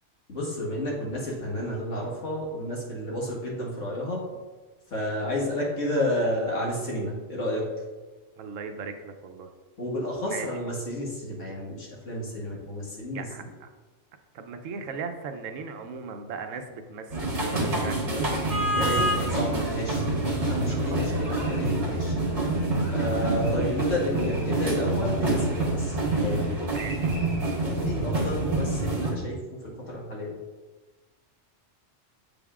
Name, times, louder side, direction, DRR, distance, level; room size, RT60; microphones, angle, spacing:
voice 1, 0.3-4.2 4.9-7.7 9.8-13.5 18.7-20.1 20.4-22.2 22.9-26.4 27.6-30.3, left 1 dB, 75° left, -4 dB, 1.8 m, -31 dB
voice 2, 8.4-9.5 10.3-10.5 13.1-13.7 14.3-18.2 20.6-21.0 26.7-27.2, right 5 dB, 85° right, 7 dB, 1.0 m, -38 dB
sound 1, 17.1-29.1, right 2 dB, 65° right, 1.7 m, -26 dB
7.8 x 5.2 x 2.4 m, 1.3 s
omnidirectional pair, 1.3 m